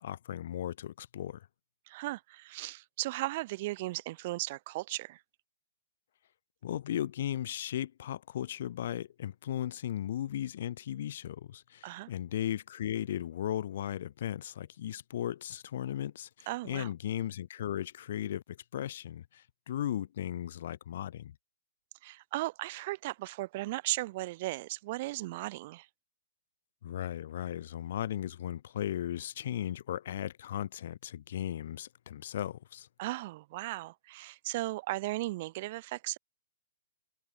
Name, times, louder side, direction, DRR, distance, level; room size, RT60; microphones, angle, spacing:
voice 1, 0.0-1.5 6.6-21.3 26.8-32.9, left 11 dB, 60° left, 4.6 m, -36 dB
voice 2, 1.9-5.2 11.8-12.1 16.5-16.9 22.0-25.9 33.0-36.2, right 19 dB, 45° right, 7.5 m, -36 dB
hypercardioid pair, 140°, 0 cm